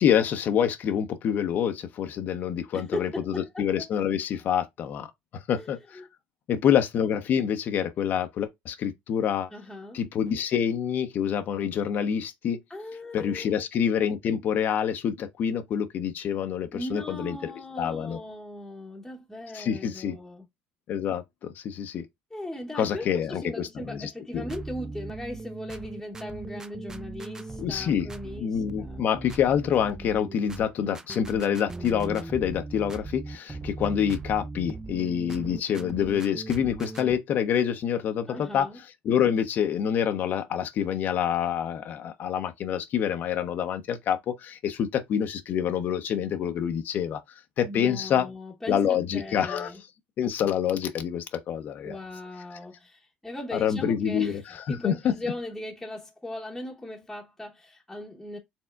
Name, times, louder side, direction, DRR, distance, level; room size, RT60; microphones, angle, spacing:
voice 1, 0.0-5.1 5.3-6.0 6.5-9.5 9.9-12.6 13.1-18.2 19.5-20.2 20.9-21.2 21.5-22.0 22.8-24.4 27.6-28.1 28.4-38.7 39.0-47.2 47.6-48.3 48.7-49.7 50.2-52.0 53.5-55.1, left 8 dB, 50° left, 0.6 m, -27 dB
voice 2, 2.7-3.9 5.5-6.0 6.5-6.6 9.5-10.0 12.7-13.7 16.7-20.4 22.3-29.0 38.3-38.8 47.6-49.8 51.8-54.4 54.7-58.4, left 1 dB, 5° left, 0.9 m, -38 dB
sound 1, 24.3-37.2, right 3 dB, 15° right, 0.4 m, -39 dB
4.3 x 3.5 x 2.3 m
cardioid pair, 115°, 4 cm